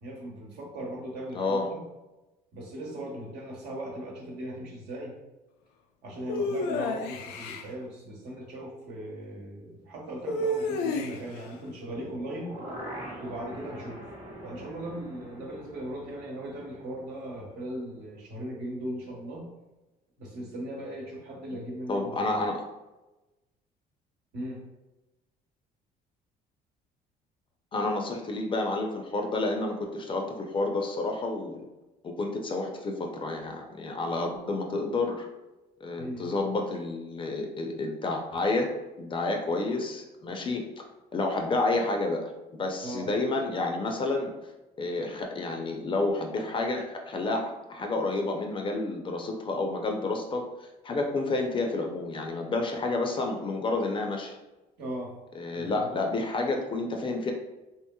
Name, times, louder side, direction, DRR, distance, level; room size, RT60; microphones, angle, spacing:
voice 1, 0.0-1.8 2.5-5.2 6.0-12.6 13.2-14.1 14.4-19.5 20.2-22.5 24.3-24.6 36.0-36.2 42.8-43.1 54.8-55.1 55.5-55.9, right 1 dB, 80° right, -3 dB, 1.0 m, -38 dB
voice 2, 1.3-1.7 21.9-22.6 27.7-31.6 32.0-35.3 35.8-38.7 39.0-40.8 41.1-44.3 44.8-54.4 55.4-57.3, left 2 dB, 30° left, 3 dB, 0.5 m, -30 dB
sound 1, 6.3-7.7 10.3-11.4, left 2 dB, 85° left, 0.4 m, -30 dB
sound 2, 11.9-17.9 18.2-18.3, right 1 dB, 35° right, 1.0 m, -44 dB
2.9 x 2.9 x 2.2 m, 1.0 s
cardioid pair, 110°, 17 cm